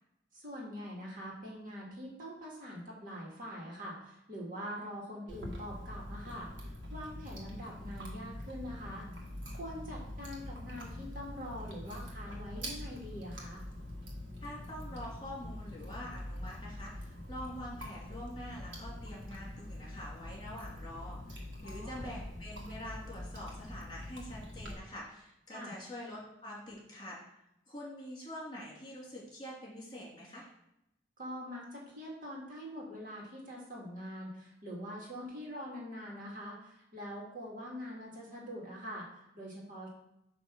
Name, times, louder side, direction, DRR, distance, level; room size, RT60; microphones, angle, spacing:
voice 1, 0.3-6.5 6.9-9.1 9.6-13.6 21.6-22.1 25.5-25.7 31.2-39.9, equal, 50° right, -3 dB, 1.8 m, -44 dB
Chewing mastication, 5.3-24.7, left 1 dB, 90° right, 1.5 m, -44 dB
voice 2, 14.4-27.2 27.7-30.5, left 1 dB, 25° left, -4 dB, 2.4 m, -45 dB
8.5 x 2.9 x 6.0 m, 0.84 s
head